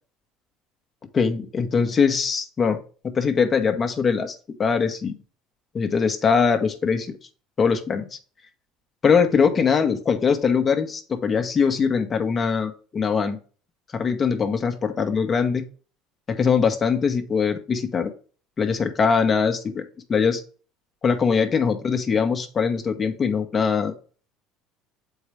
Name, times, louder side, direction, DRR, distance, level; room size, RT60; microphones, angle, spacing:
voice 1, 1.1-2.8 3.0-5.1 5.7-7.2 7.6-8.1 9.0-13.4 13.9-15.6 16.3-18.1 18.6-19.8 20.1-20.4 21.0-23.9, left 6 dB, 35° left, 6 dB, 1.1 m, -22 dB
7.1 x 4.7 x 3.4 m, 0.39 s
supercardioid pair, 80°, 0 cm